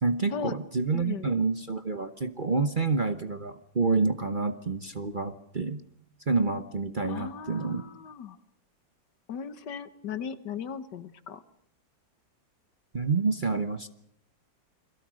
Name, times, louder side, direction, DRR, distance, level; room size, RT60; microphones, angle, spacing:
voice 1, 0.0-5.8 6.3-7.8 12.9-13.9, right 4 dB, 35° right, 10 dB, 1.1 m, -28 dB
voice 2, 0.9-1.3 7.0-8.4 9.3-11.4, left 7 dB, 70° left, 13 dB, 1.8 m, -37 dB
29.0 x 22.0 x 6.4 m, 0.67 s
omnidirectional pair, 2.0 m